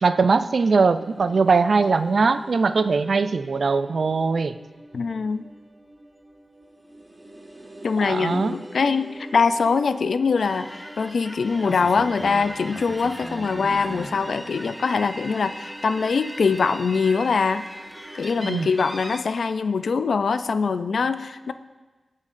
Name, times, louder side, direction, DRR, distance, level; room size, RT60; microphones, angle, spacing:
voice 1, 0.0-4.6 8.0-8.5 18.4-18.7, right 4 dB, 70° right, 12 dB, 0.3 m, -21 dB
sound 1, 0.9-18.8, right 1 dB, 25° right, 1.2 m, -45 dB
voice 2, 4.9-5.4 7.8-17.7 18.1-21.5, left 5 dB, 85° left, 11 dB, 0.4 m, -23 dB
sound 2, 10.4-19.2, equal, 5° right, 0.7 m, -38 dB
17.0 x 7.3 x 2.5 m, 1.2 s
wide cardioid pair, 80°, 0 cm